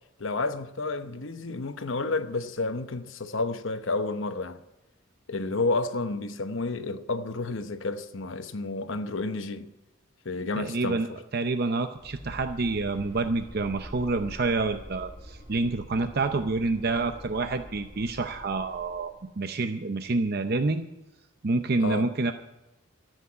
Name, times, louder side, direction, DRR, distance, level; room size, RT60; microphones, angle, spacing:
voice 1, 0.2-4.6 5.3-9.7 10.2-11.2 21.8-22.1, left 3 dB, 65° left, 0.9 m, -30 dB
voice 2, 10.6-11.1 11.3-20.8 21.4-22.3, right 3 dB, 50° right, 0.6 m, -28 dB
sound 1, 11.9-19.2, equal, 25° left, 7.3 m, -45 dB
13.5 x 8.1 x 9.5 m
head